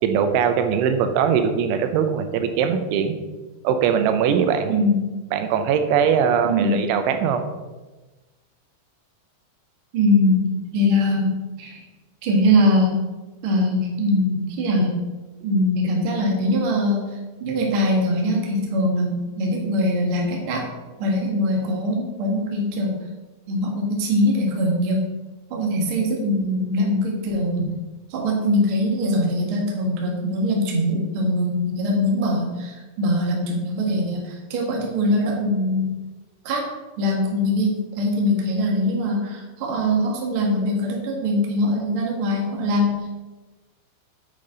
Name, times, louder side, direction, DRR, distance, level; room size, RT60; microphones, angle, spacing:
voice 1, 0.0-3.1 3.6-4.8 5.3-7.4, right 7 dB, 90° right, 8 dB, 3.2 m, -21 dB
voice 2, 6.4-6.8 9.9-11.8 12.2-13.0 13.4-15.0 15.4-17.0 17.4-20.6 21.0-23.0 23.5-25.0 25.5-27.7 28.1-35.9 36.4-36.6 37.0-43.1, left 1 dB, 50° right, -1 dB, 1.6 m, -22 dB
8.7 x 8.4 x 3.9 m, 1.2 s
omnidirectional pair, 5.3 m